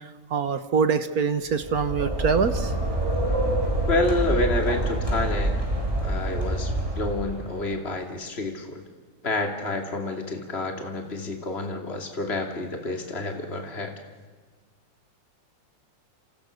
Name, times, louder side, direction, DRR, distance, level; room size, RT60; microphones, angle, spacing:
voice 1, 0.3-2.7, right 5 dB, 55° right, 11 dB, 1.6 m, -24 dB
sound 1, 1.5-7.5, right 1 dB, 15° right, 7.2 m, -26 dB
voice 2, 3.9-5.6 6.0-8.8 9.2-13.9, left 2 dB, 35° left, 3 dB, 3.0 m, -28 dB
28.5 x 27.5 x 6.6 m, 1.4 s
omnidirectional pair, 2.0 m